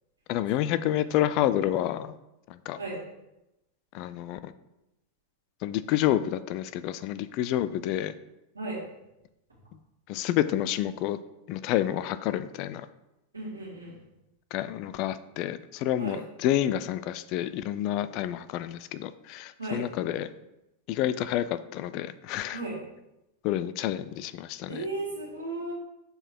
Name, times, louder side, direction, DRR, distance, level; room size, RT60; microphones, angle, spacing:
voice 1, 0.3-2.1 2.5-2.8 3.9-4.5 5.6-8.1 10.1-11.2 11.5-12.9 14.5-20.3 20.9-21.5 21.7-22.6 23.4-24.8, left 12 dB, 40° left, 13 dB, 0.3 m, -29 dB
voice 2, 13.3-14.0 16.0-16.2 19.6-19.8 22.5-22.8 24.7-25.7, right 2 dB, 80° right, -4 dB, 2.1 m, -35 dB
6.5 x 3.9 x 4.5 m, 0.91 s
figure-of-eight pair, 90°, 0 cm